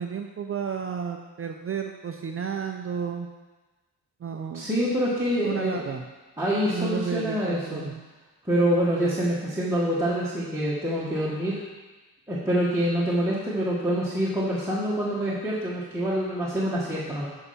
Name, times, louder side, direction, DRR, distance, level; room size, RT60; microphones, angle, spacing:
voice 1, 0.0-3.3 4.2-4.7 5.4-6.1 6.7-7.9, right 7 dB, 35° right, 4 dB, 0.4 m, -32 dB
voice 2, 4.5-5.8 6.4-7.9 8.4-11.6 12.3-17.3, equal, 5° right, -8 dB, 1.3 m, -26 dB
8.2 x 5.7 x 5.5 m, 1.2 s
wide cardioid pair, 160°, 40 cm